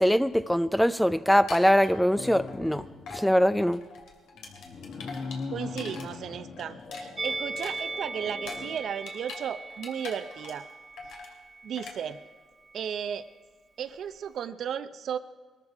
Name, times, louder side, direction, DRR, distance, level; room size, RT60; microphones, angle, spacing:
voice 1, 0.0-2.8 3.1-3.8, equal, 5° left, 13 dB, 0.5 m, -22 dB
sound 1, 1.5-2.8 3.1-3.3 3.6-6.1 6.4-9.4 9.7-10.7 11.0-11.3 11.8-12.0, left 4 dB, 80° left, 2.7 m, -43 dB
sound 2, 2.1-3.2 4.3-8.8, left 4 dB, 55° left, 2.2 m, -40 dB
voice 2, 5.5-10.7 11.6-12.2 12.7-13.3 13.8-15.2, right 8 dB, 65° right, 11 dB, 0.7 m, -35 dB
Musical instrument, 7.2-12.4 12.7-12.9, right 3 dB, 25° right, 1.2 m, -39 dB
21.0 x 13.5 x 4.8 m, 1.5 s
cardioid pair, 90°, 0 cm